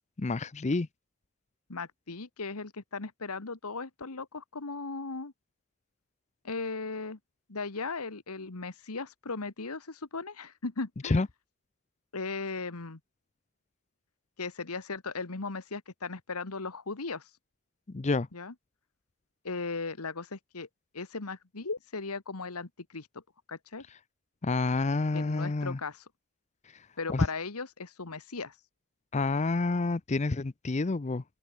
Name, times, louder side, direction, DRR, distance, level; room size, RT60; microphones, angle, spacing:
voice 1, 0.2-0.9 11.0-11.3 17.9-18.3 24.4-25.8 27.1-27.3 29.1-31.2, left 3 dB, 30° left, 0.5 m, -28 dB
voice 2, 1.7-5.3 6.4-7.2 7.5-11.2 12.1-13.0 14.4-17.3 18.3-18.5 19.4-20.7 20.9-23.2 23.5-23.9 25.1-26.1 27.0-28.6, left 4 dB, 85° left, 1.5 m, -37 dB
open air
head